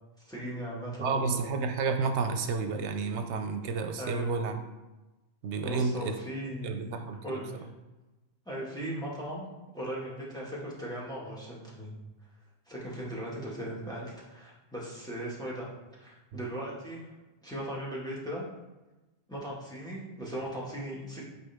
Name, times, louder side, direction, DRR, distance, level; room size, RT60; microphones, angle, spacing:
voice 1, 0.3-1.5 4.0-4.3 5.6-6.9 7.2-7.7 8.5-9.5 9.7-11.9 12.7-15.7 16.0-17.1 17.4-18.4 19.3-21.2, right 1 dB, 5° left, -6 dB, 1.8 m, -38 dB
voice 2, 1.0-4.6 5.4-6.2 6.6-7.4 16.3-16.4, right 4 dB, 80° right, 7 dB, 0.9 m, -31 dB
8.6 x 4.4 x 3.5 m, 1.1 s
omnidirectional pair, 1.2 m